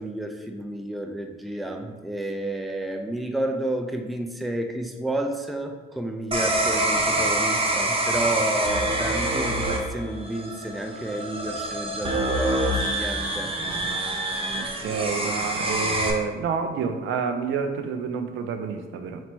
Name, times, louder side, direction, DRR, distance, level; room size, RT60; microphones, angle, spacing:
voice 1, 0.0-13.5, right 1 dB, ahead, 4 dB, 0.3 m, -31 dB
sound 1, 6.3-16.1, right 1 dB, 30° right, 0.7 m, -26 dB
voice 2, 14.5-19.2, right 5 dB, 80° right, 7 dB, 0.4 m, -29 dB
4.3 x 2.0 x 4.4 m, 1.3 s
cardioid pair, 90°, 20 cm